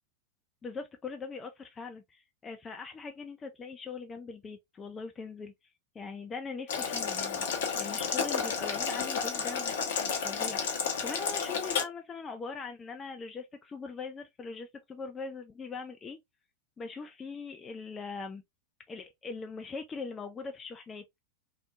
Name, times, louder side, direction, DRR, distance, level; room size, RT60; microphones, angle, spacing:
voice 1, 0.6-5.5 5.9-16.2 16.8-18.4 18.9-21.0, left 4 dB, 20° left, 0.3 m, -41 dB
Boiling, 6.7-11.8, left 6 dB, 60° left, 0.7 m, -31 dB
2.9 x 2.1 x 2.2 m
figure-of-eight pair, 90°, 0 cm